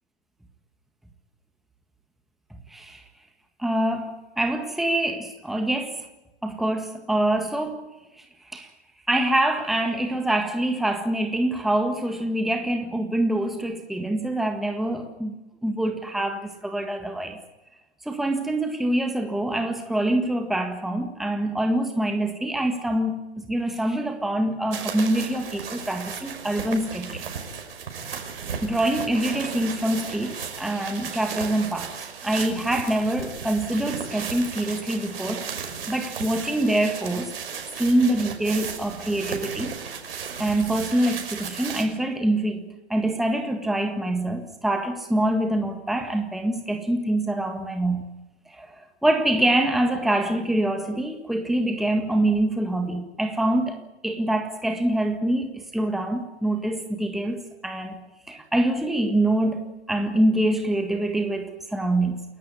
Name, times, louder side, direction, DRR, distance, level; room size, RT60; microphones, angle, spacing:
voice 1, 2.7-3.0 3.6-6.0 6.4-7.8 8.2-8.3 8.5-8.7 9.1-15.3 15.6-17.4 18.0-27.2 28.6-31.9 32.2-37.3 37.8-39.7 40.1-48.1 48.5-53.8 54.0-59.6 59.9-62.2, right 1 dB, ahead, 1.7 m, -25 dB
sound 1, 24.7-41.8, right 6 dB, 60° right, 5.6 m, -35 dB
29.0 x 14.5 x 9.7 m
figure-of-eight pair, 120°, 33 cm